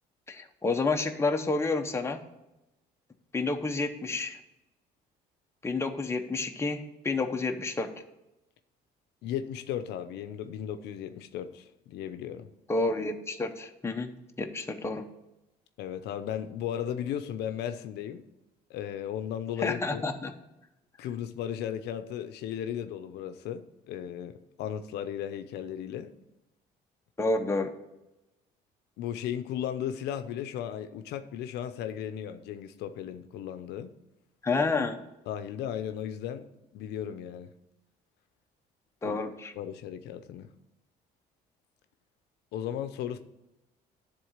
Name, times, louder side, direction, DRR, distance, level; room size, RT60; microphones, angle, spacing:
voice 1, 0.3-2.3 3.3-4.4 5.6-7.9 12.7-15.1 19.6-20.3 27.2-27.7 34.4-35.0 39.0-39.5, left 3 dB, 15° left, 0.9 m, -30 dB
voice 2, 9.2-12.5 15.8-18.2 18.7-20.0 21.0-26.1 29.0-33.9 35.3-36.5 36.7-37.5 39.0-39.2 39.5-40.5 42.5-43.2, left 9 dB, 80° left, 0.6 m, -35 dB
11.0 x 3.8 x 7.2 m
cardioid pair, 110°, 17 cm